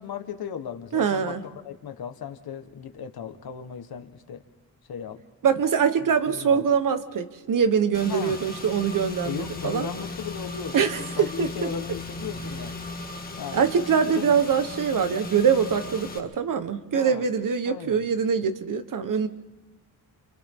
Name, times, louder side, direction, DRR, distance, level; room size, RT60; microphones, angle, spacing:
voice 1, 0.0-4.4 4.9-5.2 6.0-6.7 8.1-8.4 9.2-12.7 13.4-13.7 14.0-14.3 16.9-17.2 17.6-18.0, left 7 dB, 75° left, 7 dB, 1.5 m, -36 dB
voice 2, 0.9-1.4 5.4-9.9 10.7-11.5 13.5-19.3, right 7 dB, 60° right, 10 dB, 1.3 m, -23 dB
Car / Engine, 7.9-16.2, left 3 dB, 25° left, 1.7 m, -37 dB
28.5 x 28.5 x 3.8 m, 1.1 s
wide cardioid pair, 155°, 37 cm